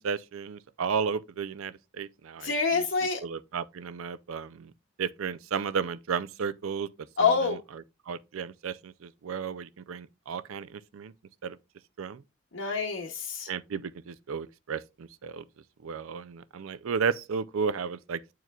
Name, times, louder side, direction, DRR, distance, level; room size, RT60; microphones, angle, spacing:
voice 1, 0.0-2.8 3.2-4.7 5.0-6.9 7.2-7.6 8.1-11.1 11.4-11.6 12.0-12.2 13.5-15.4 15.8-18.2, right 6 dB, 75° right, 0.4 m, -33 dB
voice 2, 2.4-3.2 7.2-7.6 12.5-13.5, left 5 dB, 65° left, 0.8 m, -26 dB
9.1 x 4.6 x 2.3 m
head